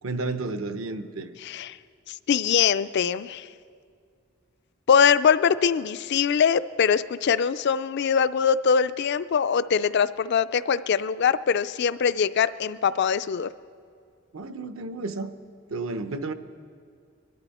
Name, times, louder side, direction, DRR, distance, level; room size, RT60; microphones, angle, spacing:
voice 1, 0.0-1.3 14.3-15.3 15.7-16.3, right 3 dB, 75° right, 9 dB, 0.8 m, -31 dB
voice 2, 1.4-1.8 2.1-3.4 4.9-13.5, left 7 dB, 55° left, 15 dB, 0.4 m, -22 dB
23.0 x 12.0 x 4.2 m, 2.2 s
head